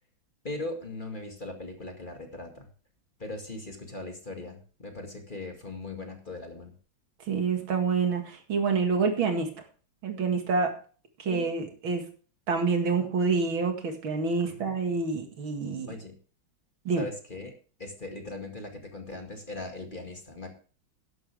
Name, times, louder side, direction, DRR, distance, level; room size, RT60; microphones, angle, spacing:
voice 1, 0.4-2.7 3.2-6.7 11.2-11.5 14.4-14.8 15.9-16.2 16.9-17.5 17.8-20.5, left 2 dB, 25° left, 3 dB, 2.1 m, -39 dB
voice 2, 7.3-9.5 10.0-10.7 11.2-12.0 12.5-16.0 16.9-17.1, right 4 dB, 85° right, 5 dB, 2.8 m, -27 dB
12.5 x 11.5 x 3.5 m, 0.39 s
omnidirectional pair, 2.1 m